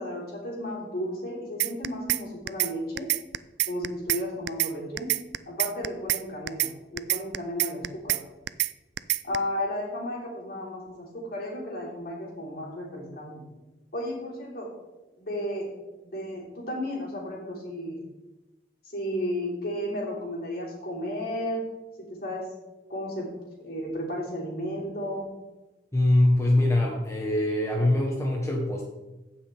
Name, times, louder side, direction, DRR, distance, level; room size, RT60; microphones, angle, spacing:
voice 1, 0.0-3.1 3.7-5.1 5.5-8.2 9.2-13.4 13.9-14.7 15.2-15.7 16.0-18.0 18.9-21.6 22.0-22.5 22.9-23.3 23.6-25.3, left 1 dB, 55° left, -4 dB, 3.3 m, -33 dB
sound 1, 1.6-2.2 2.5-2.7 3.0-4.2 4.5-4.7 5.0-6.2 6.5-6.7 7.0-8.2 8.5-8.7 9.0-9.4, right 16 dB, 75° right, 0.4 m, -25 dB
voice 2, 25.9-28.8, left 1 dB, 15° left, -1 dB, 1.0 m, -23 dB
16.0 x 5.9 x 3.4 m, 1.1 s
head